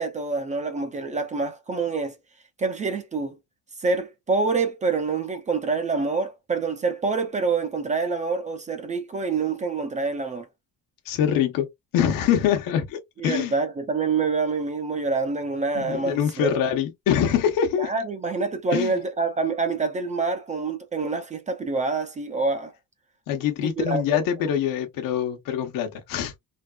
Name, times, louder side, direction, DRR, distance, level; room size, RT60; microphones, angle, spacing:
voice 1, 0.0-2.2 2.6-3.4 3.8-10.5 13.2-16.6 17.8-22.7 23.6-24.5, right 4 dB, 25° right, 0.4 m, -26 dB
voice 2, 11.1-11.7 11.9-13.5 15.7-17.9 18.7-19.0 23.3-26.3, left 9 dB, 80° left, 0.9 m, -24 dB
3.5 x 2.3 x 2.3 m
cardioid pair, 160°, 33 cm